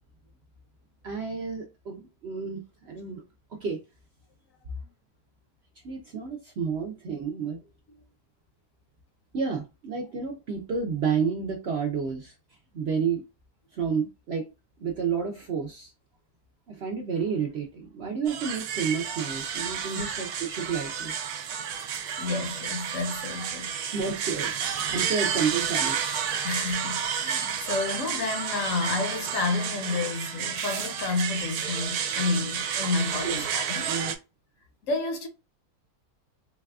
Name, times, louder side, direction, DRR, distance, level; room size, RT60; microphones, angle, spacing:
voice 1, 1.0-3.2 3.5-3.8 5.8-7.6 9.3-12.3 12.7-13.2 13.7-14.5 14.8-15.9 16.7-21.1 23.9-24.5 24.9-26.0 26.6-26.7 33.2-33.4 33.9-34.1, right 6 dB, 60° right, 0.7 m, -30 dB
sound 1, 18.3-34.2, right 8 dB, 75° right, 1.1 m, -31 dB
voice 2, 22.2-24.0 26.4-34.0 34.8-35.3, left 3 dB, 60° left, 1.1 m, -30 dB
4.0 x 2.2 x 2.3 m
omnidirectional pair, 1.6 m